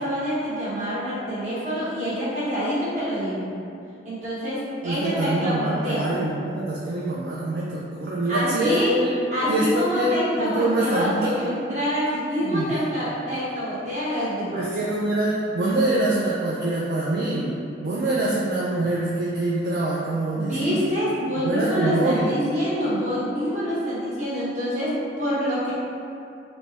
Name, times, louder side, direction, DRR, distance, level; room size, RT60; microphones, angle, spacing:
voice 1, 0.0-3.5 4.0-6.1 8.3-9.0 9.3-14.7 20.3-25.7, equal, 40° right, -10 dB, 1.0 m, -26 dB
voice 2, 4.8-9.1 9.5-11.4 12.4-12.7 14.5-20.8 21.4-22.4, right 2 dB, 55° right, -6 dB, 0.3 m, -25 dB
3.3 x 2.1 x 4.0 m, 2.6 s
head